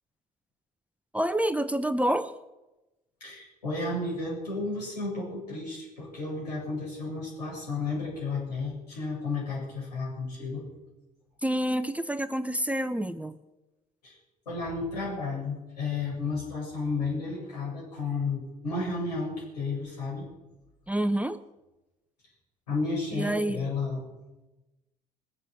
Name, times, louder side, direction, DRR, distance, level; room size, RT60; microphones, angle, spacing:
voice 1, 1.1-2.3 11.4-13.4 20.9-21.4 23.1-23.6, right 1 dB, 5° right, 12 dB, 0.8 m, -28 dB
voice 2, 3.2-10.7 14.0-14.2 14.5-20.3 22.7-24.0, left 3 dB, 80° left, -5 dB, 7.6 m, -32 dB
20.5 x 8.4 x 7.9 m, 1.0 s
figure-of-eight pair, 55°, 20 cm